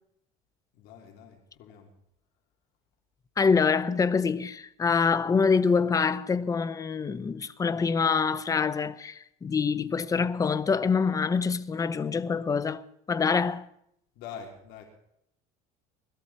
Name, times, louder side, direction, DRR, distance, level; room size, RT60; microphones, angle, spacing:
voice 1, 0.7-1.9 14.1-14.8, left 7 dB, 65° left, 3.4 m, -45 dB
voice 2, 3.4-13.7, left 5 dB, 20° left, 0.7 m, -25 dB
20.5 x 13.5 x 4.3 m
cardioid pair, 135°, 18 cm